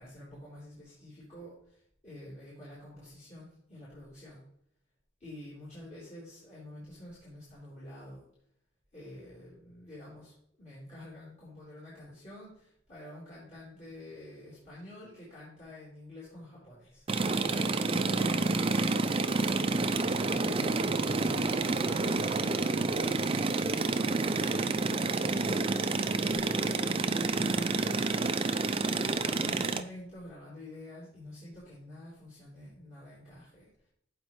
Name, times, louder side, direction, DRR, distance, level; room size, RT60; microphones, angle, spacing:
voice 1, 0.0-4.4 5.2-8.2 8.9-18.9 19.7-25.0 25.3-33.9, left 1 dB, 35° left, -9 dB, 3.9 m, -48 dB
sound 1, 17.1-29.8, right 3 dB, 30° right, 0.5 m, -29 dB
15.0 x 5.2 x 3.1 m, 0.68 s
head